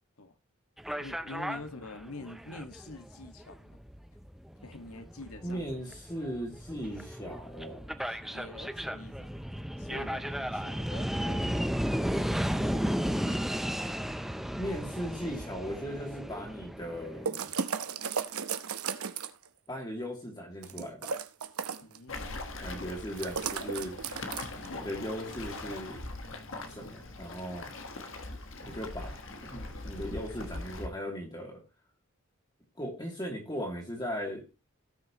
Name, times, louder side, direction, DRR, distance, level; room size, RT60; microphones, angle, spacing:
sound 1, 0.8-17.3, equal, ahead, 0.5 m, -34 dB
voice 1, 1.0-3.8 4.6-5.6 8.0-9.4 9.8-11.5 21.8-22.4, left 2 dB, 80° left, 1.6 m, -46 dB
voice 2, 5.4-7.9 14.5-17.5 19.7-21.1 22.6-24.0 24.8-26.1 26.7-27.7 28.6-31.6 32.8-34.5, equal, 20° left, 2.7 m, -38 dB
sound 2, 17.3-19.5 20.6-22.0 23.2-24.7, right 6 dB, 85° right, 0.8 m, -34 dB
Waves surf, 22.1-30.9, left 2 dB, 60° left, 1.4 m, -41 dB
17.5 x 6.3 x 3.0 m
head